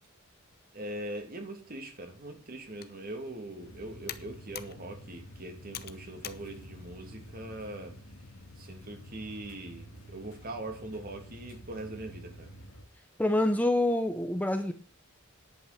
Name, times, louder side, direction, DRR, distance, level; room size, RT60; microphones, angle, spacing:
voice 1, 0.7-7.9 8.6-12.5, right 1 dB, 45° right, 2.7 m, -41 dB
Computer keyboard, 2.6-7.8, left 10 dB, 45° left, 0.9 m, -48 dB
sound 1, 3.6-12.9, equal, 80° left, 2.2 m, -49 dB
voice 2, 13.2-14.7, left 1 dB, 5° left, 0.8 m, -26 dB
10.5 x 8.5 x 6.8 m
head